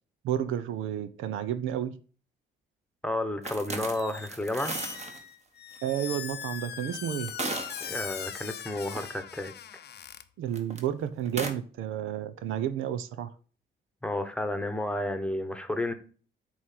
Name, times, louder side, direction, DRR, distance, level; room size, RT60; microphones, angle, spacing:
voice 1, 0.2-1.9 5.8-7.3 10.4-13.3, right 10 dB, 85° right, 0.7 m, -31 dB
voice 2, 3.0-4.8 7.8-9.5 14.0-15.9, left 1 dB, 5° left, 1.1 m, -31 dB
sound 1, 3.4-5.2 5.7-5.8 6.9-8.4 8.8-9.0 10.5-10.8 11.3-11.5, right 3 dB, 35° right, 1.4 m, -36 dB
Squeak, 3.9-4.3 4.6-10.2, left 9 dB, 55° left, 0.7 m, -40 dB
8.0 x 3.2 x 5.7 m
cardioid pair, 90°, 20 cm